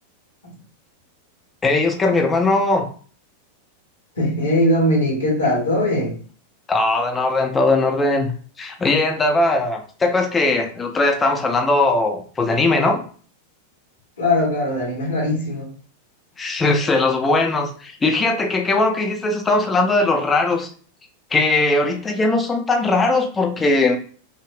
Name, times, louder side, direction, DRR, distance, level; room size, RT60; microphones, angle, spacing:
voice 1, 1.6-2.9 6.7-8.3 8.6-13.0 16.4-20.7 21.3-24.0, left 2 dB, 15° left, 0.5 m, -19 dB
voice 2, 4.1-6.1 14.2-15.7, left 1 dB, 70° left, 1.3 m, -20 dB
3.5 x 2.0 x 2.4 m
figure-of-eight pair, 90°, 0 cm